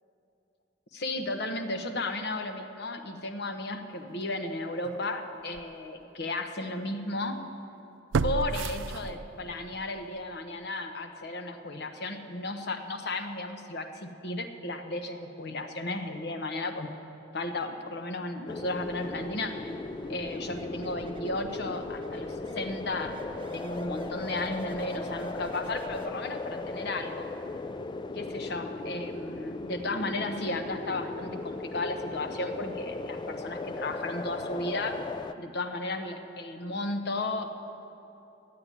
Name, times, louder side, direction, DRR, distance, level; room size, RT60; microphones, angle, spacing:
voice 1, 0.9-7.4 8.2-16.9 17.3-19.7 20.1-23.2 23.5-27.3 28.1-35.0 35.4-37.5, left 2 dB, 60° left, 6 dB, 1.0 m, -34 dB
sound 1, 4.8-5.0 5.5-5.6 8.1-9.6 9.9-10.0, right 4 dB, 80° right, 0.4 m, -30 dB
sound 2, 18.5-35.3, left 3 dB, 25° left, 0.3 m, -37 dB
sound 3, 18.8-26.1, right 1 dB, 25° right, 0.7 m, -49 dB
13.5 x 8.7 x 9.8 m, 3.0 s
head